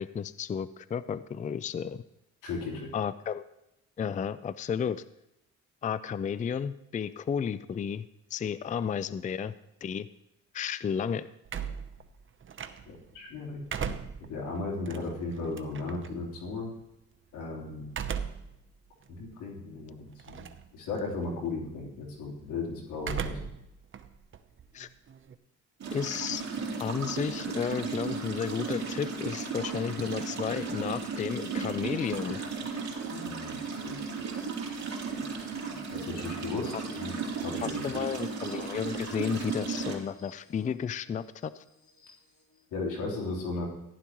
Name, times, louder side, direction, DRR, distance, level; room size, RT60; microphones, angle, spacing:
voice 1, 0.0-2.0 2.9-3.5 4.0-5.0 5.8-8.1 8.3-9.5 9.8-10.1 10.5-11.3 24.7-24.9 25.9-26.4 26.8-32.4 36.7-36.8 37.6-41.6, left 7 dB, 25° left, 15 dB, 0.4 m, -33 dB
voice 2, 2.4-2.9 12.9-13.6 14.3-16.7 17.3-17.9 19.1-23.4 33.1-33.5 33.8-34.0 35.1-35.2 35.9-37.1 37.4-38.0 42.7-43.7, left 3 dB, 90° left, -2 dB, 3.7 m, -36 dB
sound 1, 11.5-13.1 13.5-16.1 17.9-18.6 19.1-19.2 20.2-20.7 21.0-21.4 23.0-23.6 23.9-25.3, right 7 dB, 40° right, 0.8 m, -37 dB
sound 2, 25.8-40.0, right 5 dB, 60° right, 3.0 m, -35 dB
sound 3, 36.6-42.6, left 2 dB, 70° left, 3.7 m, -54 dB
15.0 x 11.5 x 3.1 m, 0.84 s
cardioid pair, 90°, 30 cm